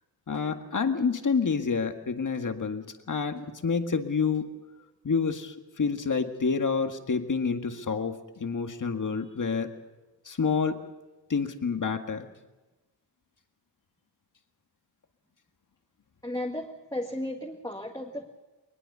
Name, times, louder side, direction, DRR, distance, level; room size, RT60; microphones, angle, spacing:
voice 1, 0.3-4.5 5.0-9.7 10.3-10.8 11.3-12.3, left 5 dB, 45° left, 6 dB, 1.9 m, -28 dB
voice 2, 16.2-18.3, left 1 dB, 10° left, 0 dB, 1.9 m, -34 dB
21.0 x 20.5 x 6.9 m, 1.1 s
cardioid pair, 75°, 42 cm